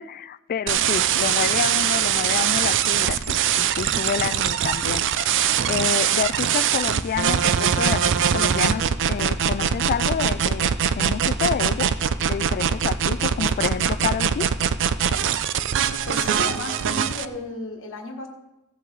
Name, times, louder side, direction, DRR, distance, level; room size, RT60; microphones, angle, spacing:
voice 1, 0.0-5.3 5.7-11.9 12.2-14.5, left 7 dB, 40° left, 0.3 m, -29 dB
sound 1, 0.7-17.3, right 8 dB, 55° right, 0.4 m, -22 dB
voice 2, 16.0-18.3, left 2 dB, 60° left, 1.5 m, -33 dB
16.0 x 7.4 x 3.9 m
head